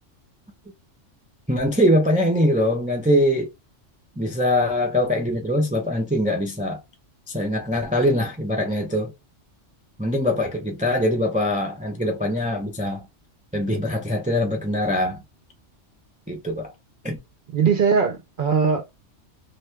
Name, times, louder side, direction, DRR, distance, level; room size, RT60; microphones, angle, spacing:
voice 1, 1.5-3.5 4.2-6.8 7.3-9.1 10.0-13.1 13.5-15.2 16.3-16.7 17.0-17.2, left 1 dB, 15° right, 0.3 m, -22 dB
voice 2, 17.5-18.9, right 6 dB, 60° right, 0.6 m, -20 dB
2.8 x 2.2 x 3.1 m
omnidirectional pair, 1.3 m